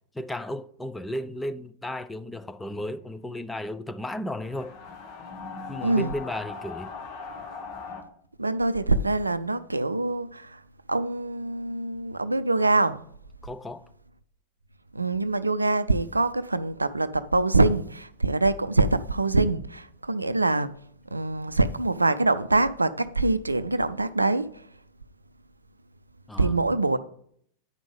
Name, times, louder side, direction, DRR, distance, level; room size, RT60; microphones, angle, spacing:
voice 1, 0.1-4.7 5.7-6.9 13.4-13.9 26.3-26.6, left 1 dB, 5° left, 0.5 m, -34 dB
sound 1, 4.4-8.0, left 4 dB, 45° left, 1.3 m, -39 dB
voice 2, 5.8-6.1 8.4-10.6 10.9-13.0 14.9-20.7 21.1-24.7 26.4-27.0, right 2 dB, 80° right, 0.4 m, -24 dB
9.7 x 5.3 x 4.9 m
figure-of-eight pair, 90°, 0 cm